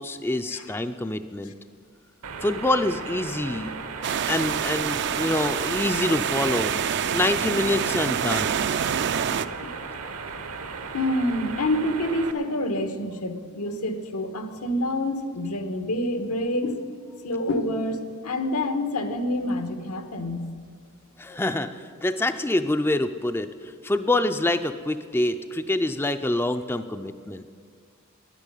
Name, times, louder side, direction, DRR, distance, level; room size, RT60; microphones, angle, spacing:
voice 1, 0.0-1.5 2.4-3.7 4.3-6.7 7.1-8.6 21.2-27.5, left 2 dB, 10° left, 9 dB, 0.4 m, -26 dB
sound 1, 2.2-12.3, right 4 dB, 75° right, 1.0 m, -36 dB
sound 2, 4.0-9.5, right 8 dB, 50° right, 0.4 m, -26 dB
voice 2, 10.9-16.8 17.2-20.5, left 1 dB, 85° left, 8 dB, 1.3 m, -27 dB
9.9 x 9.8 x 9.9 m, 2.1 s
head